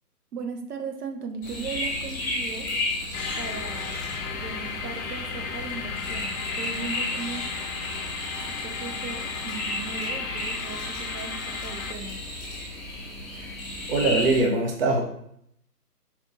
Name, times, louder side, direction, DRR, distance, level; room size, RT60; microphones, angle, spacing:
voice 1, 0.3-2.7 3.4-4.0 4.4-7.5 8.5-12.2, right 5 dB, 70° right, 5 dB, 0.8 m, -37 dB
sound 1, 1.4-14.4, left 1 dB, 10° left, 1.1 m, -33 dB
sound 2, 3.1-11.9, left 7 dB, 60° left, 0.5 m, -35 dB
voice 2, 13.9-15.0, right 2 dB, 40° right, 0 dB, 0.6 m, -23 dB
4.3 x 2.5 x 3.7 m, 0.72 s
hypercardioid pair, 150°, 48 cm